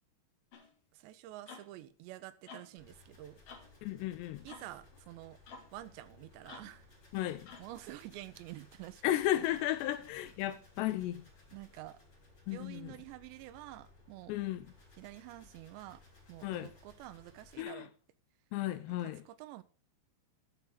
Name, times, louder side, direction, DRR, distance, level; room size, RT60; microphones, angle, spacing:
sound 1, 0.5-0.7 1.5-1.7 2.5-2.7 3.5-3.7 4.5-4.7 5.5-5.7 6.5-6.8 7.5-7.7, left 5 dB, 65° left, 1.5 m, -51 dB
voice 1, 0.9-3.4 4.4-5.4 5.7-6.9 7.6-9.0 9.3-9.5 11.5-12.0 12.5-14.3 15.0-16.0 16.3-17.9 19.0-19.6, right 15 dB, 80° right, 2.8 m, -49 dB
sound 2, 2.8-17.6, left 2 dB, 25° left, 5.1 m, -61 dB
voice 2, 3.8-4.5 7.1-7.5 9.0-11.3 12.5-12.9 14.3-14.6 16.4-16.7 17.6-17.9 18.5-19.2, left 13 dB, 80° left, 2.6 m, -34 dB
12.0 x 6.0 x 5.6 m
omnidirectional pair, 5.2 m